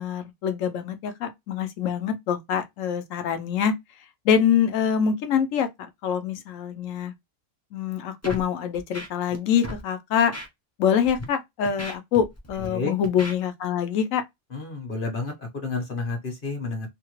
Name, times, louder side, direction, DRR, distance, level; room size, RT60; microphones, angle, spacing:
voice 1, 0.0-3.7 4.2-7.1 7.7-10.3 10.8-14.2, left 8 dB, 70° left, 1.0 m, -25 dB
Scratching (performance technique), 8.2-8.4 8.7-9.4 9.6-9.8 10.3-10.5 11.0-11.2 11.6-12.7 13.0-13.3, equal, 20° left, 0.4 m, -36 dB
voice 2, 14.5-16.9, left 3 dB, 40° left, 1.0 m, -30 dB
2.8 x 2.3 x 3.0 m
omnidirectional pair, 1.5 m